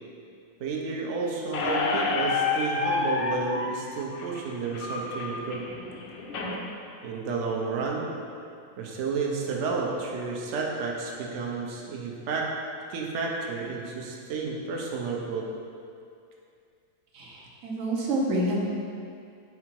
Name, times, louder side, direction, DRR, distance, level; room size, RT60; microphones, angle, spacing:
voice 1, 0.6-5.7 7.0-8.1 8.8-12.6 12.9-15.5, right 4 dB, 90° right, -1 dB, 0.6 m, -31 dB
Squeak, 1.5-6.5, left 4 dB, 75° left, 1.3 m, -29 dB
voice 2, 17.1-18.6, right 1 dB, 55° right, -3 dB, 1.1 m, -28 dB
4.8 x 4.6 x 4.5 m, 2.4 s
omnidirectional pair, 2.0 m